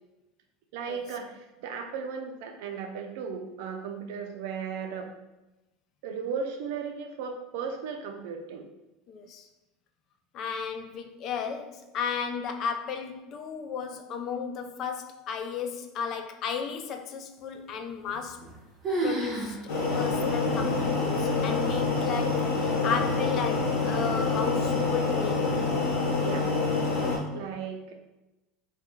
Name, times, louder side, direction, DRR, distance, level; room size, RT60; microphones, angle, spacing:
voice 1, 0.7-5.1 6.0-8.7 26.2-26.5 27.3-27.9, right 6 dB, 75° right, 0.4 m, -36 dB
voice 2, 9.1-9.5 10.3-18.5 19.0-19.6 19.9-25.6, left 6 dB, 50° left, 0.3 m, -34 dB
sound 1, 18.1-18.6 18.8-19.6 19.9-20.0 20.7-20.8 21.5-21.9, right 2 dB, 30° right, 0.7 m, -30 dB
sound 2, 19.7-27.2, left 3 dB, 90° left, 0.9 m, -27 dB
2.2 x 2.2 x 2.9 m
supercardioid pair, 115°, 0 cm